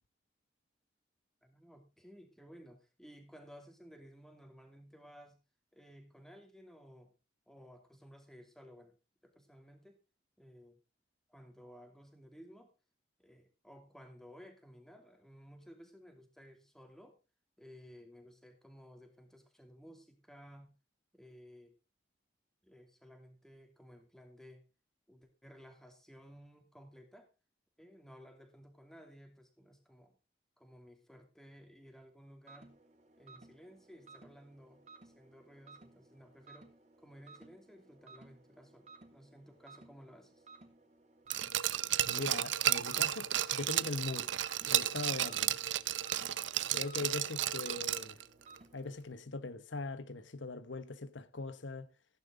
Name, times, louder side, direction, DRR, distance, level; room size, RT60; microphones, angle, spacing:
voice 1, 1.4-5.4 5.7-7.1 7.5-9.0 9.2-10.0 10.4-10.8 11.3-12.7 13.2-17.2 17.6-20.8 21.1-21.8 22.6-24.6 25.1-27.3 27.8-30.2 30.6-32.7 33.2-36.7 37.0-40.4, equal, ahead, 2.7 m, -56 dB
sound 1, 32.5-49.0, right 3 dB, 35° right, 3.0 m, -59 dB
Glass, 41.3-48.2 48.6-48.7, right 12 dB, 80° right, 0.7 m, -33 dB
voice 2, 42.1-44.4 44.7-45.6 46.7-48.2 48.7-51.9, left 3 dB, 80° left, 1.1 m, -41 dB
15.5 x 10.5 x 3.8 m
head